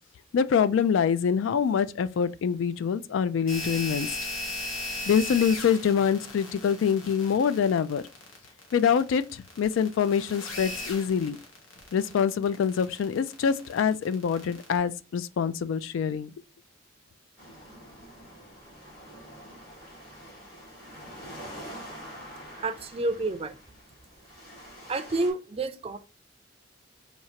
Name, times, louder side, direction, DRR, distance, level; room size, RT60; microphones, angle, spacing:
voice 1, 0.3-4.1 5.1-8.0 8.7-11.4 11.9-16.3, left 7 dB, 70° left, 0.3 m, -25 dB
sound 1, 3.5-14.8, left 2 dB, 90° left, 1.1 m, -38 dB
sound 2, 17.4-25.3, equal, 50° left, 2.3 m, -46 dB
voice 2, 22.6-23.6 24.9-26.0, right 2 dB, 30° right, 0.5 m, -29 dB
4.4 x 2.8 x 2.8 m
head